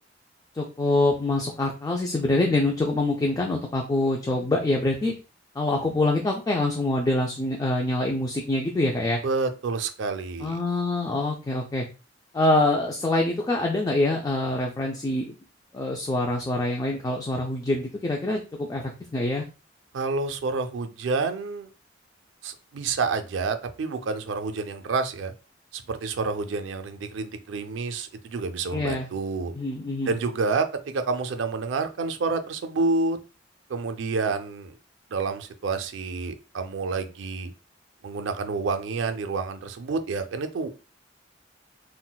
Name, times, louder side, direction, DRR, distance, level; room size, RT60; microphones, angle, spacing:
voice 1, 0.5-5.1 5.6-9.2 10.4-11.8 12.3-15.4 15.7-19.4 28.7-29.1 29.5-30.2, left 2 dB, 20° left, 0.3 m, -25 dB
voice 2, 9.2-10.6 19.9-21.7 22.4-25.3 25.7-29.5 30.1-33.2 33.7-34.7 35.1-37.5 38.0-40.7, right 4 dB, 75° right, 0.4 m, -28 dB
3.8 x 2.1 x 2.2 m
head